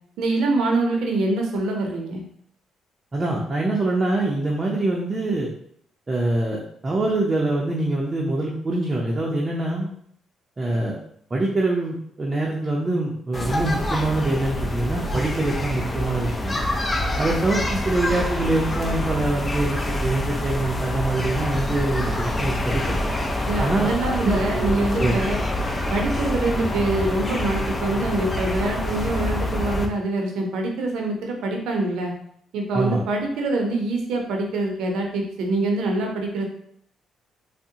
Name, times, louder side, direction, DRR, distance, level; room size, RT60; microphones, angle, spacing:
voice 1, 0.2-2.2 23.5-25.4 25.9-32.1 32.5-36.4, right 2 dB, 85° right, 2 dB, 0.6 m, -25 dB
voice 2, 3.1-5.5 6.1-9.9 10.6-11.0 11.3-16.6 17.2-23.0 23.6-23.9 24.2-25.1 32.7-33.0, right 2 dB, 30° right, -3 dB, 0.5 m, -24 dB
sound 1, 13.3-29.9, left 1 dB, 25° left, 0.5 m, -26 dB
3.5 x 2.0 x 2.8 m, 0.66 s
cardioid pair, 90°, 0 cm